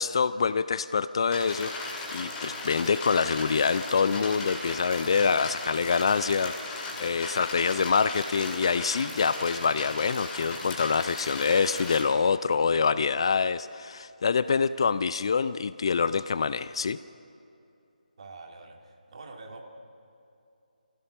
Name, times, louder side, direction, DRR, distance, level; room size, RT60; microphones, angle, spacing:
voice 1, 0.0-17.0, left 5 dB, 35° left, 16 dB, 0.4 m, -26 dB
sound 1, 1.3-12.0, left 3 dB, 10° left, 2.2 m, -37 dB
voice 2, 18.2-19.6, right 3 dB, 40° right, 2 dB, 2.2 m, -45 dB
25.0 x 16.0 x 6.7 m, 2.7 s
figure-of-eight pair, 155°, 5 cm